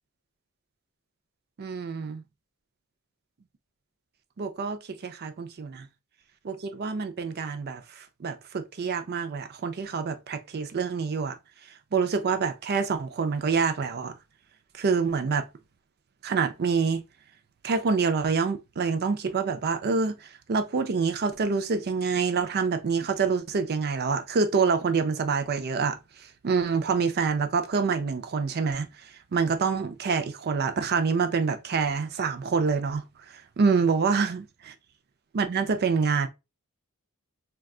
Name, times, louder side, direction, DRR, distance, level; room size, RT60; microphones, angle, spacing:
voice 1, 1.6-2.2 4.4-5.9 6.4-11.4 11.9-14.1 14.7-15.4 16.2-17.0 17.6-28.9 29.3-34.7 35.3-36.3, right 5 dB, 50° right, 0.5 m, -26 dB
3.7 x 2.3 x 2.3 m
head